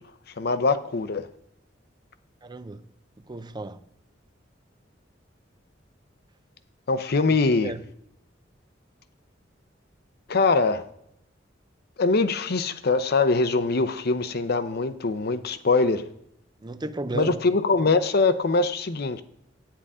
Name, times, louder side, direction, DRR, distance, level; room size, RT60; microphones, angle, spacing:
voice 1, 0.4-1.3 6.9-7.7 10.3-10.9 12.0-16.1 17.1-19.2, left 3 dB, 55° left, 0.7 m, -23 dB
voice 2, 2.4-2.9 3.3-3.8 7.2-7.8 16.6-17.4, right 2 dB, 25° right, 0.5 m, -34 dB
10.0 x 9.9 x 3.7 m
head